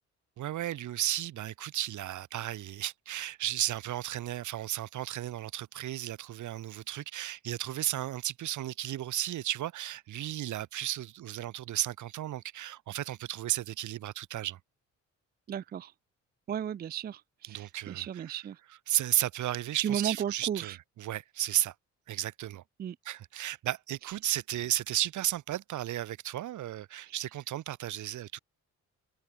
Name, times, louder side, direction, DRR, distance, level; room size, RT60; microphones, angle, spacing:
voice 1, 0.4-14.6 17.5-18.0 18.9-21.7 22.1-22.6 23.0-28.4, right 13 dB, 75° right, 2.1 m, -34 dB
voice 2, 15.5-15.9 16.5-18.6 19.8-20.8 22.8-23.0 27.1-27.2, right 9 dB, 35° right, 0.4 m, -35 dB
open air
cardioid pair, 90°, 30 cm